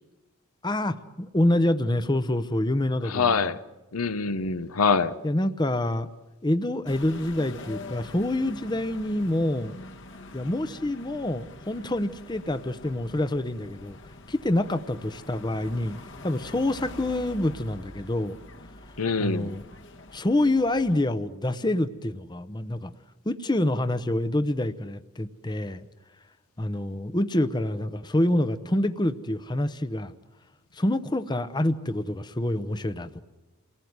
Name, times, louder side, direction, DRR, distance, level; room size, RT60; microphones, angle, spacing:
voice 1, 0.6-3.5 5.2-6.1 6.4-9.8 10.3-14.0 14.3-18.4 19.2-19.6 20.1-22.9 23.3-25.8 26.6-30.1 30.7-33.2, left 1 dB, 20° left, 0.8 m, -27 dB
voice 2, 3.1-3.6 3.9-5.1 19.0-19.6, left 5 dB, 75° left, 1.0 m, -24 dB
sound 1, 6.9-21.0, left 2 dB, 55° left, 1.6 m, -45 dB
29.5 x 19.5 x 9.5 m
head